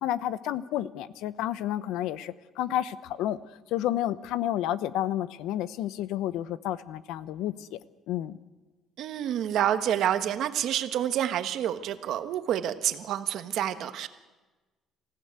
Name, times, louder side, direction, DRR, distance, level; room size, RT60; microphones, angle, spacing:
voice 1, 0.0-3.4 3.7-7.8 8.1-8.4, left 12 dB, 90° left, 15 dB, 0.8 m, -30 dB
voice 2, 9.0-14.1, right 10 dB, 65° right, 9 dB, 1.2 m, -28 dB
26.5 x 15.5 x 8.2 m, 1.2 s
cardioid pair, 135°, 0 cm